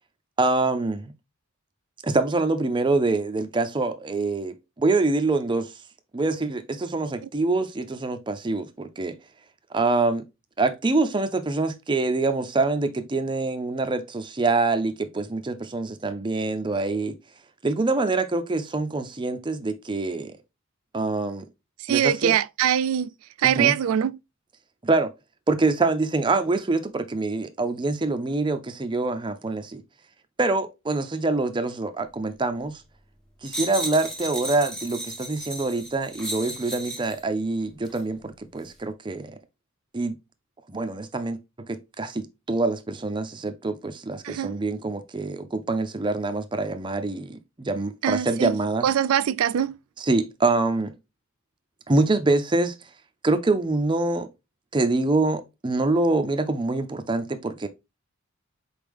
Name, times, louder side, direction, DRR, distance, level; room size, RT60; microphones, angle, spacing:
voice 1, 0.4-1.1 2.0-5.7 6.1-9.2 9.7-10.2 10.6-17.1 17.6-20.4 20.9-21.4 21.9-22.3 23.4-23.7 24.8-25.1 25.5-29.8 30.4-32.8 33.4-39.3 39.9-40.2 40.7-48.9 50.0-50.9 51.9-52.7 53.2-54.3 54.7-57.7, right 3 dB, 25° right, 0.5 m, -25 dB
voice 2, 21.9-23.1 23.4-24.2 44.2-44.5 48.0-48.6 48.8-49.8, right 9 dB, 80° right, 0.3 m, -23 dB
sound 1, 33.5-37.2 37.9-38.0, right 1 dB, 5° left, 0.8 m, -34 dB
4.4 x 3.3 x 3.4 m
head